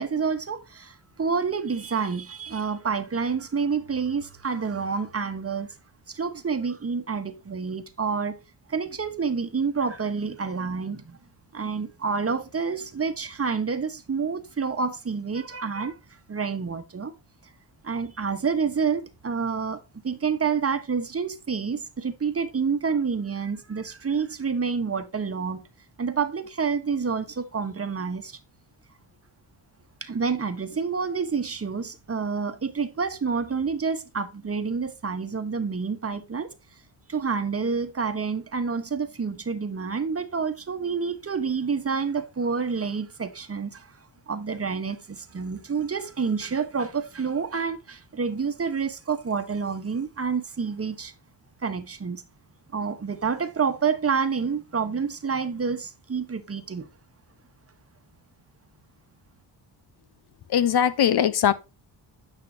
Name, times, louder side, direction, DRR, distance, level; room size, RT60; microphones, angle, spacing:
voice 1, 0.0-5.7 6.1-8.4 8.7-11.2 11.5-16.0 16.3-17.1 17.8-25.7 26.0-28.4 30.0-36.5 37.1-44.0 44.3-51.1 51.6-52.2 52.7-56.9, right 5 dB, 30° right, 1.2 m, -28 dB
voice 2, 60.5-61.5, left 9 dB, 55° left, 0.8 m, -20 dB
9.5 x 5.6 x 2.8 m
cardioid pair, 80°, 46 cm